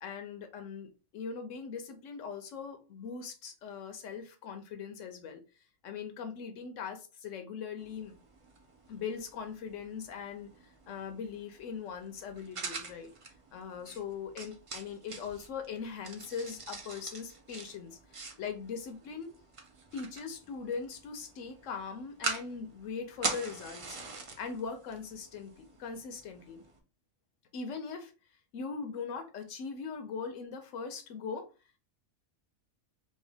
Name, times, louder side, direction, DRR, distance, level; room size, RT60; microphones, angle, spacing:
voice 1, 0.0-5.4 5.8-8.2 8.9-13.1 13.5-19.3 19.9-24.0 24.4-26.6 27.5-28.1 28.5-31.5, left 6 dB, 70° left, 0.9 m, -40 dB
sound 1, 7.8-26.8, right 3 dB, 50° right, 0.4 m, -44 dB
2.7 x 2.7 x 3.3 m
omnidirectional pair, 1.4 m